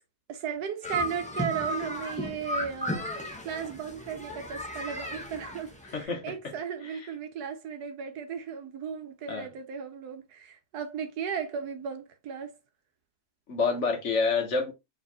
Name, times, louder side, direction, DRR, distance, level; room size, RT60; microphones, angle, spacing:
voice 1, 0.3-12.5, right 7 dB, 80° right, 1.3 m, -36 dB
sound 1, 0.8-6.0, equal, 5° left, 0.6 m, -34 dB
voice 2, 5.9-6.5 9.3-9.5 13.5-14.7, left 4 dB, 55° left, 1.1 m, -28 dB
4.2 x 3.5 x 2.8 m
omnidirectional pair, 1.7 m